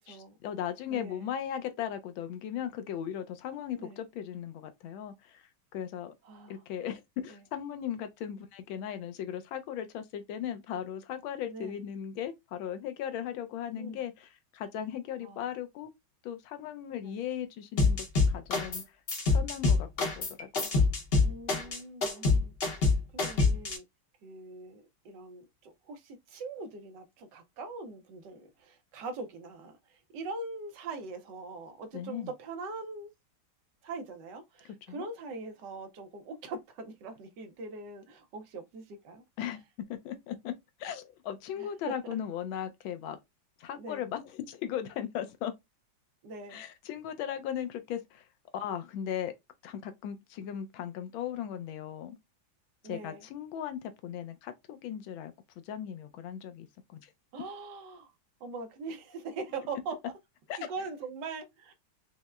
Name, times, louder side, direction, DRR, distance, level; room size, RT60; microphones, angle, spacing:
voice 1, 0.1-5.4 5.7-6.1 6.5-15.9 16.2-18.0 18.3-18.8 19.3-19.9 20.2-20.6 31.9-32.3 34.9-35.1 39.4-39.6 40.0-40.5 40.8-43.2 43.6-45.5 46.5-48.2 48.5-49.3 49.6-52.2 52.9-55.3 55.7-56.7 56.9-57.1 60.5-60.7, left 9 dB, 85° left, 1.4 m, -37 dB
voice 2, 0.9-1.3 3.8-4.0 6.2-6.6 7.3-7.4 11.5-11.8 13.7-14.0 15.2-15.4 17.0-17.2 21.2-22.5 23.1-23.8 24.2-33.1 33.8-39.2 41.6-41.7 42.0-42.2 43.7-44.0 46.2-46.6 52.8-53.2 57.3-58.1 58.4-59.9 60.6-61.7, right 3 dB, 70° right, 1.2 m, -42 dB
sound 1, 17.8-18.8 19.1-23.8, left 3 dB, 45° left, 0.8 m, -25 dB
5.4 x 2.0 x 2.3 m
omnidirectional pair, 2.1 m